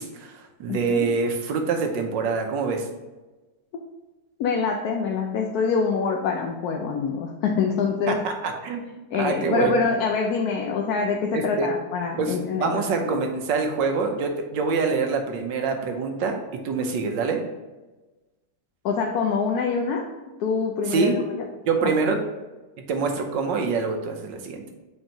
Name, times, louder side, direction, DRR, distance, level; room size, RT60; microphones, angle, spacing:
voice 1, 0.0-2.9 8.1-8.8 9.2-9.8 11.3-11.7 12.2-17.4 20.9-21.1 21.7-22.2 22.9-24.6, right 4 dB, 80° right, 4 dB, 1.5 m, -25 dB
voice 2, 0.7-1.1 4.4-8.2 9.1-13.2 18.8-20.1 20.4-21.5, left 5 dB, 70° left, 1 dB, 1.0 m, -25 dB
7.7 x 4.2 x 2.9 m, 1.1 s
omnidirectional pair, 2.0 m